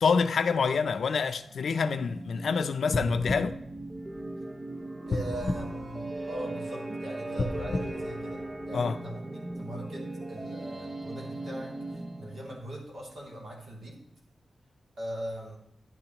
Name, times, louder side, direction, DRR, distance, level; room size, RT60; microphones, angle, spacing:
voice 1, 0.0-3.6 8.7-9.0, left 5 dB, 70° left, 0.5 m, -27 dB
sound 1, 1.2-12.6, right 2 dB, 25° right, 0.6 m, -39 dB
sound 2, 2.9-4.5 5.1-6.6 7.3-9.0 9.5-9.6, left 2 dB, 40° left, 0.8 m, -34 dB
voice 2, 5.1-14.0 15.0-15.6, equal, 60° right, 2.8 m, -41 dB
12.0 x 10.5 x 3.0 m
wide cardioid pair, 170°, 0 cm